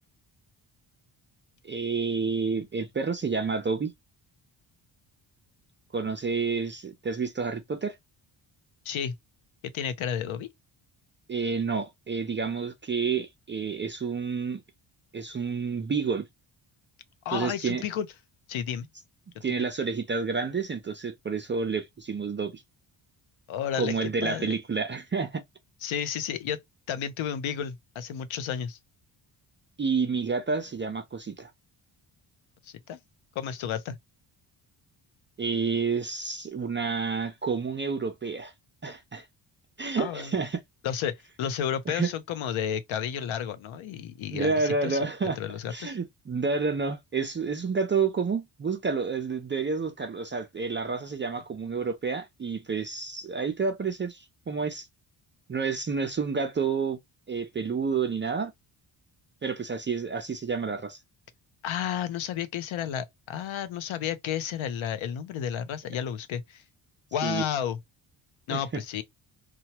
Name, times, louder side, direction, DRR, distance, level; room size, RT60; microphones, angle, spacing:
voice 1, 1.6-3.9 5.9-8.0 11.3-14.6 15.1-16.3 17.3-17.8 19.4-22.6 23.7-25.4 29.8-31.5 35.4-38.5 38.8-39.3 39.8-40.6 41.9-42.1 44.3-45.4 45.7-54.9 55.5-57.0 57.3-58.5 59.4-61.0 67.2-67.4 68.5-68.8, right 5 dB, 25° right, 0.4 m, -29 dB
voice 2, 9.7-10.5 17.2-18.1 18.5-18.9 23.5-24.5 25.8-26.6 26.9-28.8 32.6-33.0 33.4-34.0 40.0-40.3 40.8-45.0 45.4-45.9 61.6-66.6 67.1-67.8 68.5-69.0, left 9 dB, 80° left, 0.7 m, -32 dB
2.9 x 2.2 x 2.8 m
cardioid pair, 115°, 47 cm